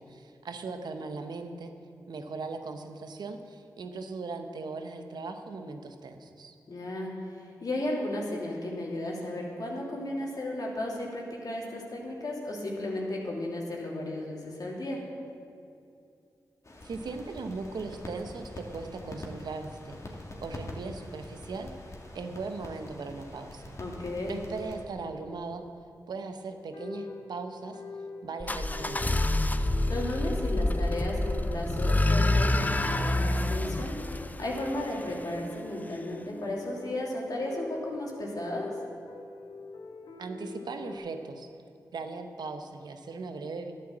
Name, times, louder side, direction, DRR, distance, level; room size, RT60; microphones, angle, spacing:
voice 1, 0.0-1.7 2.1-6.5 16.8-21.7 22.1-23.7 24.2-25.7 26.1-27.8 28.2-29.2 40.2-41.5 41.9-43.7, right 4 dB, 75° right, 7 dB, 1.0 m, -39 dB
voice 2, 6.7-15.0 23.8-24.4 29.9-38.7, left 1 dB, 60° left, -2 dB, 3.0 m, -34 dB
sound 1, 16.6-24.9, left 1 dB, 45° left, 2.2 m, -44 dB
sound 2, 26.5-41.0, left 2 dB, 75° left, 1.5 m, -44 dB
sound 3, 28.4-35.3, left 2 dB, 20° left, 0.6 m, -27 dB
11.5 x 9.3 x 7.4 m, 2.6 s
cardioid pair, 45°, 7 cm